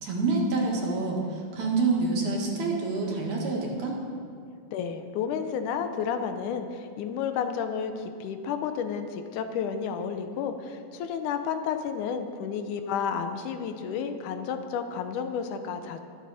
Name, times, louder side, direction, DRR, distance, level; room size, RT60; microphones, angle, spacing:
voice 1, 0.0-4.0, right 3 dB, 70° right, -2 dB, 3.2 m, -27 dB
voice 2, 4.7-16.0, left 7 dB, 85° left, 8 dB, 2.2 m, -31 dB
22.5 x 7.5 x 4.1 m, 2.3 s
omnidirectional pair, 3.6 m